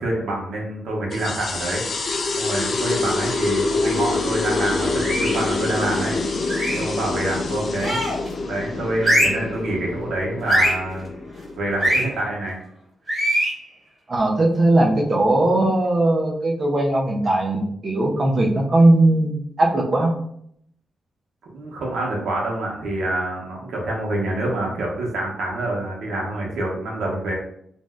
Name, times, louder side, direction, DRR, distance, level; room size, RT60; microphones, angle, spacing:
voice 1, 0.0-1.8 2.4-6.2 6.7-8.0 8.4-11.1 11.6-12.6 21.5-27.3, right 1 dB, 70° right, -2 dB, 0.9 m, -26 dB
sound 1, 1.1-12.1, left 3 dB, 40° left, 0.3 m, -26 dB
sound 2, 5.0-5.5 6.5-6.9 7.8-8.3 9.0-9.5 10.5-10.9 11.8-12.1 13.1-13.6, right 1 dB, 10° right, 1.1 m, -21 dB
voice 2, 14.1-20.1, right 1 dB, 35° right, 0 dB, 0.5 m, -19 dB
2.6 x 2.1 x 3.4 m, 0.69 s
wide cardioid pair, 175°, 0 cm